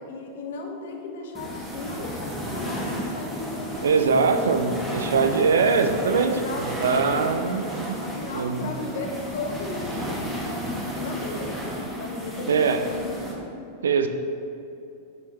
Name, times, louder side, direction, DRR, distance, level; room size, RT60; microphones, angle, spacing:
voice 1, 0.0-4.3 6.1-6.7 7.0-7.3 8.0-13.5, left 2 dB, 60° left, 2 dB, 0.8 m, -36 dB
sound 1, 1.3-13.3, equal, 5° right, 1.3 m, -33 dB
voice 2, 3.8-8.0 8.3-8.7 12.5-12.8 13.8-14.1, right 5 dB, 65° right, 8 dB, 0.4 m, -22 dB
6.1 x 5.7 x 3.0 m, 2.6 s
figure-of-eight pair, 90°, 0 cm